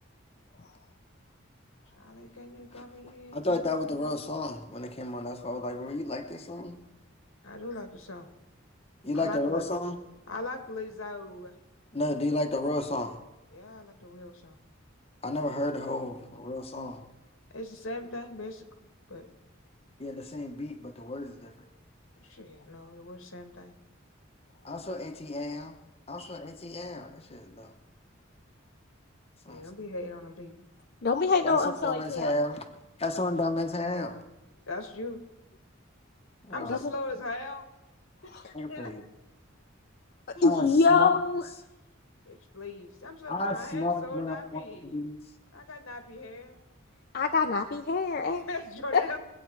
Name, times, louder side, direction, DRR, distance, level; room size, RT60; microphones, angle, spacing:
voice 1, 2.0-4.3 7.4-8.3 9.1-9.7 10.3-11.6 13.5-14.6 17.5-18.6 19.1-19.3 22.2-23.8 26.2-26.4 29.5-30.7 34.7-35.2 36.5-37.7 38.2-38.3 38.7-38.9 40.3-40.4 42.3-45.0 45.5-46.7 48.3-49.2, left 2 dB, 90° left, 6 dB, 1.8 m, -40 dB
voice 2, 3.3-6.8 9.0-10.0 11.9-13.1 15.2-17.0 20.0-21.5 24.6-25.7 26.1-27.7 29.5-29.6 31.4-31.6 31.8-32.6 33.0-34.1 36.6-36.7 38.5-39.0 40.4-40.6 40.9-41.1 43.3-44.4 44.9-45.2, left 2 dB, 30° left, 4 dB, 0.9 m, -32 dB
voice 3, 31.0-32.4 36.7-36.9 38.3-38.5 40.4-41.5 47.1-48.5 48.9-49.0, left 4 dB, 50° left, 5 dB, 0.6 m, -25 dB
21.5 x 8.5 x 4.6 m, 0.97 s
head